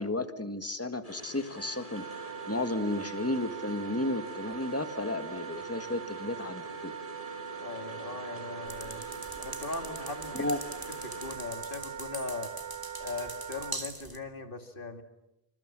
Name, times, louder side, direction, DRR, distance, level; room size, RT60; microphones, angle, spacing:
voice 1, 0.0-7.0 10.3-10.6, left 2 dB, 15° left, 9 dB, 1.6 m, -33 dB
sound 1, 1.0-11.4, left 1 dB, 35° left, 7.0 m, -47 dB
Wind instrument woodwind instrument, 1.5-13.8, right 8 dB, 85° right, 1.4 m, -42 dB
voice 2, 7.6-9.0 9.4-10.5 11.0-12.5 13.0-15.0, left 3 dB, 55° left, 7 dB, 2.6 m, -39 dB
sound 2, 8.6-14.2, right 1 dB, 20° right, 2.1 m, -43 dB
27.5 x 26.0 x 7.4 m, 0.91 s
omnidirectional pair, 1.1 m